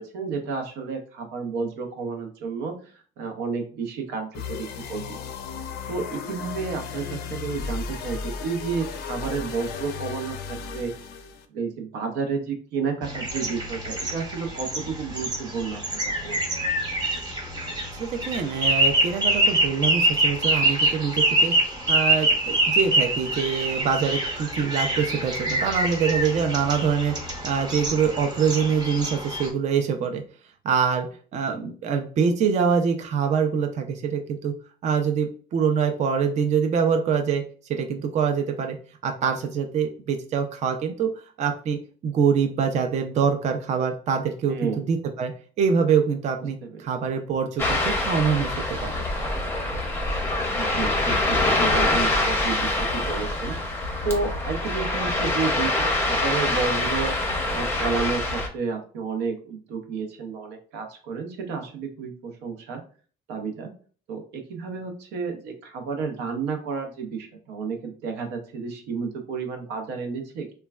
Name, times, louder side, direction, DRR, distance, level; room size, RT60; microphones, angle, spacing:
voice 1, 0.0-5.2 5.9-10.9 11.5-16.4 24.6-24.7 44.5-44.8 46.6-46.9 50.5-53.6 54.0-57.1 57.5-62.8 63.3-63.7 64.1-70.6, right 5 dB, 85° right, 5 dB, 0.6 m, -31 dB
sound 1, 4.3-11.4, left 5 dB, 70° left, 0.4 m, -35 dB
sound 2, 13.0-29.5, right 2 dB, 25° right, 0.8 m, -25 dB
voice 2, 17.9-21.5 21.9-27.2 27.4-30.2 30.6-31.1 31.3-34.5 34.8-37.4 37.7-38.8 39.0-41.1 41.4-45.3 45.6-48.5 48.8-49.0, right 6 dB, 45° right, 5 dB, 0.4 m, -24 dB
Ocean, 47.6-58.5, left 2 dB, 15° left, 0.6 m, -25 dB
3.1 x 2.2 x 2.3 m, 0.42 s
cardioid pair, 110°, 17 cm